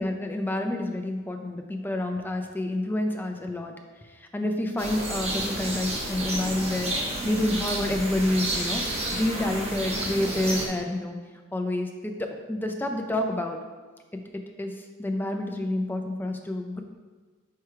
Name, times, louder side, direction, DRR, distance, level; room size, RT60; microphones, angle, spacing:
voice 1, 0.0-3.7 4.0-6.9 7.2-11.2 11.5-13.6 14.3-16.8, left 1 dB, 10° left, 3 dB, 0.5 m, -28 dB
sound 1, 4.8-10.7, right 1 dB, 30° right, 1.1 m, -31 dB
4.7 x 4.6 x 4.7 m, 1.4 s
head